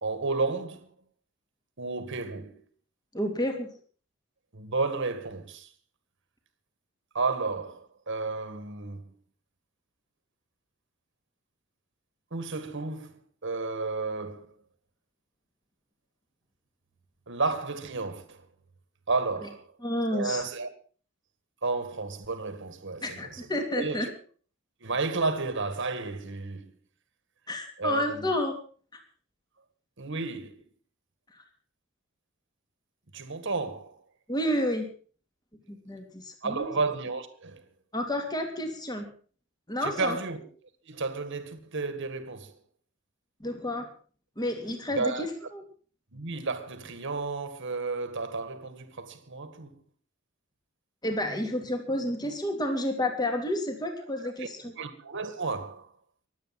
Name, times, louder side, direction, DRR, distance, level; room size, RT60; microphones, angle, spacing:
voice 1, 0.0-0.9 1.8-2.5 4.5-5.7 7.1-9.1 12.3-13.1 13.4-14.4 17.3-18.4 19.1-19.7 20.1-20.7 21.6-23.5 23.7-24.1 24.8-26.7 27.8-28.3 30.0-30.6 33.1-34.0 36.4-37.6 39.8-40.5 40.8-42.5 44.9-45.3 46.1-49.8 54.4-54.5 54.8-55.9, right 3 dB, 60° right, 1.8 m, -32 dB
voice 2, 3.1-3.7 19.8-20.4 23.0-24.1 27.5-28.6 31.3-31.4 34.3-34.9 35.7-36.7 37.9-39.1 39.7-40.2 43.4-43.9 44.4-45.3 45.5-45.6 51.0-54.7, left 1 dB, 20° left, 3.0 m, -30 dB
23.0 x 8.7 x 5.8 m
head